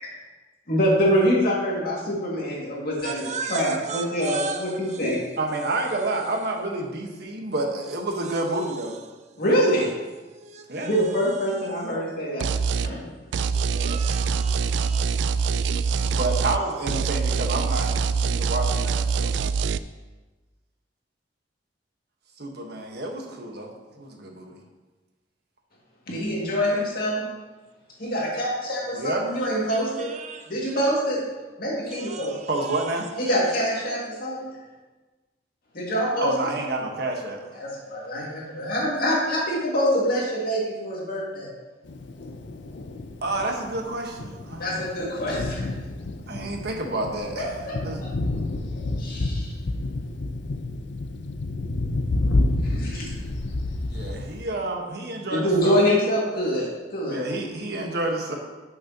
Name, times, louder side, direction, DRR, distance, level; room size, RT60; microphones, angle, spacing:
voice 1, 0.7-5.2 9.4-9.9 10.8-12.5 12.8-13.1 26.1-27.3 28.0-30.1 30.5-31.2 31.6-32.4 33.2-34.5 35.7-36.5 37.5-41.5 44.6-45.6 47.4-48.1 48.7-49.5 52.6-53.1 53.9-54.1 55.3-57.2, equal, 55° left, 2.2 m, -25 dB
voice 2, 3.0-5.3 8.8-8.9 10.3-12.0 13.4-16.2 29.3-30.8 31.9-32.9 33.3-33.4, right 5 dB, 40° right, 0.6 m, -38 dB
voice 3, 5.4-9.0 10.7-10.9 13.7-14.0 16.1-19.3 22.4-24.6 28.9-29.2 32.5-33.1 36.2-37.4 43.2-44.9 46.3-47.6 47.8-48.0 53.8-55.8 57.0-58.4, right 2 dB, 60° right, 1.3 m, -29 dB
sound 1, 12.4-12.9 13.3-16.6 16.9-19.8, right 5 dB, 80° right, 0.3 m, -24 dB
Thunder, 41.8-54.4, left 2 dB, 75° left, 0.6 m, -29 dB
10.5 x 6.6 x 2.9 m
head